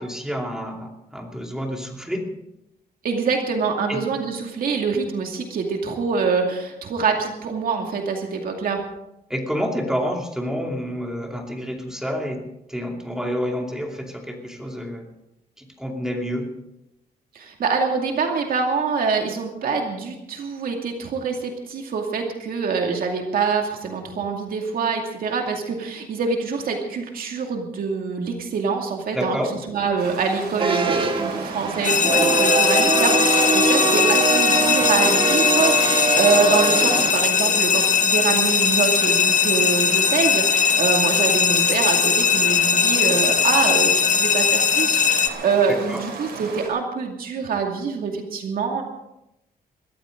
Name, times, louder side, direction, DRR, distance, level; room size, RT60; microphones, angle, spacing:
voice 1, 0.0-2.2 3.9-4.0 9.3-15.1 15.6-16.5 29.1-29.6 45.7-46.0, equal, 5° right, 1 dB, 2.6 m, -29 dB
voice 2, 3.0-8.8 17.3-29.4 29.7-48.8, right 5 dB, 65° right, 2 dB, 2.4 m, -25 dB
sound 1, 30.0-46.7, right 4 dB, 90° right, 6.3 m, -35 dB
sound 2, 30.6-37.1, right 4 dB, 30° right, 1.4 m, -22 dB
sound 3, 31.8-45.3, left 7 dB, 50° left, 1.1 m, -19 dB
21.5 x 14.5 x 3.8 m, 0.85 s
wide cardioid pair, 145°, 16 cm